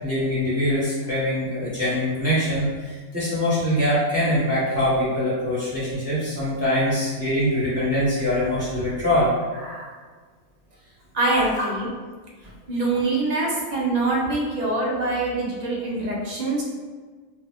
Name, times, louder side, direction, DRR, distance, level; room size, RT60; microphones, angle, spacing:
voice 1, 0.0-9.8 11.2-11.4, left 1 dB, 10° right, -9 dB, 0.9 m, -23 dB
voice 2, 11.1-11.9 12.7-16.6, right 2 dB, 55° right, -4 dB, 0.4 m, -24 dB
2.8 x 2.4 x 3.3 m, 1.4 s
omnidirectional pair, 1.5 m